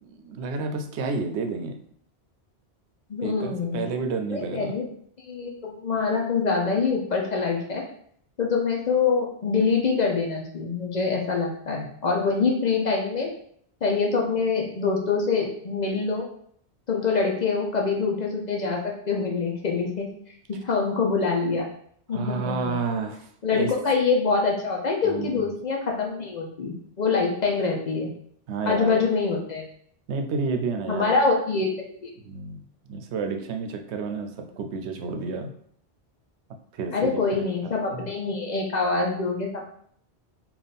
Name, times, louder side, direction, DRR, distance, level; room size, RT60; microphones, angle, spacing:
voice 1, 0.0-1.8 3.2-4.7 22.1-23.7 25.0-25.5 28.5-29.0 30.1-31.2 32.2-35.5 36.7-38.1, right 4 dB, 85° right, 6 dB, 0.9 m, -31 dB
voice 2, 3.1-3.8 4.3-4.8 5.3-7.8 8.4-13.3 13.8-16.3 16.9-18.8 19.1-20.1 20.5-21.7 22.1-22.7 23.4-28.1 28.7-29.7 30.9-31.7 32.0-32.1 36.9-39.6, left 4 dB, 50° left, 0 dB, 0.7 m, -25 dB
3.5 x 2.5 x 4.0 m, 0.63 s
omnidirectional pair, 1.1 m